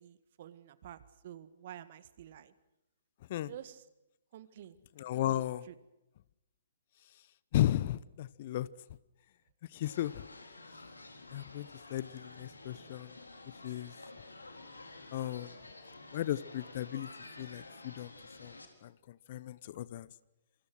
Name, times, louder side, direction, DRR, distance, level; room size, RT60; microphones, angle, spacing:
voice 1, 0.0-2.5 3.4-3.8 4.3-5.8, right 11 dB, 45° right, 15 dB, 1.7 m, -50 dB
voice 2, 5.0-5.6 7.5-8.7 9.7-10.3 11.3-13.1 13.6-13.9 15.1-15.5 16.1-17.1 17.4-18.1 18.4-18.6 18.8-20.1, left 13 dB, 45° left, 20 dB, 0.9 m, -35 dB
sound 1, 9.8-18.7, left 2 dB, 80° left, 4.1 m, -51 dB
27.5 x 25.0 x 6.3 m, 0.93 s
figure-of-eight pair, 125°, 0 cm